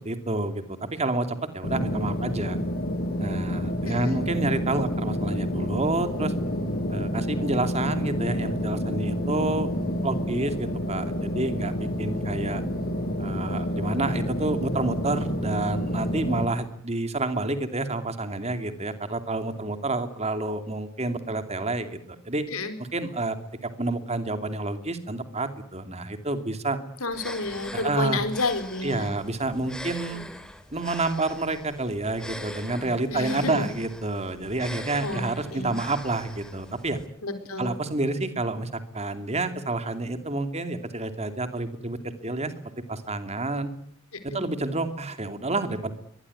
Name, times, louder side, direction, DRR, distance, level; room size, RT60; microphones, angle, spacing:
voice 1, 0.0-2.6 3.2-6.3 6.9-9.7 10.0-12.6 13.2-22.5 22.9-23.4 23.6-26.8 27.7-28.2 28.8-30.2 30.7-37.0 37.6-42.5 42.9-43.7 44.2-45.9, right 2 dB, 30° right, 9 dB, 2.6 m, -29 dB
sound 1, 1.6-16.5, equal, 45° left, 6.8 m, -29 dB
voice 2, 3.8-4.3 22.5-22.7 27.0-29.1 33.1-33.6 35.0-35.8 37.2-37.7 44.3-44.4, left 3 dB, 85° left, 8 dB, 4.4 m, -30 dB
sound 2, 27.1-37.1, left 1 dB, 5° left, 2.8 m, -42 dB
23.5 x 20.0 x 9.8 m, 0.63 s
head